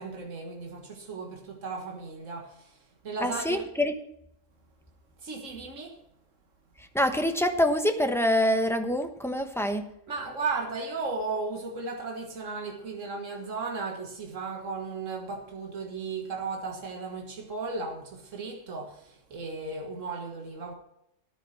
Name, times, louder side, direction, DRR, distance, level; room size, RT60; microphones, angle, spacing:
voice 1, 0.0-3.7 5.2-6.0 10.1-20.7, right 4 dB, 80° right, 1.9 m, -35 dB
voice 2, 3.2-3.9 6.9-9.9, equal, ahead, 1.0 m, -25 dB
13.5 x 10.0 x 4.2 m
omnidirectional pair, 1.3 m